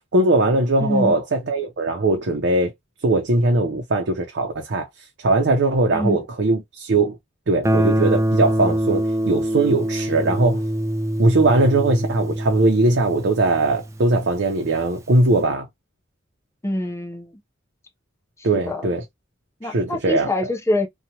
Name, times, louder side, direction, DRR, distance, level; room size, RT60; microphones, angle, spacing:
voice 1, 0.1-2.7 3.0-4.9 5.2-7.2 7.5-10.6 11.2-15.7 18.4-19.0 19.6-20.3, right 2 dB, 60° right, 0.6 m, -20 dB
voice 2, 0.8-1.2 5.9-6.2 16.6-17.3 18.4-18.9 19.6-20.9, left 1 dB, 15° left, 0.7 m, -25 dB
Guitar, 7.6-14.4, right 1 dB, 15° right, 0.4 m, -24 dB
2.9 x 2.3 x 2.8 m
head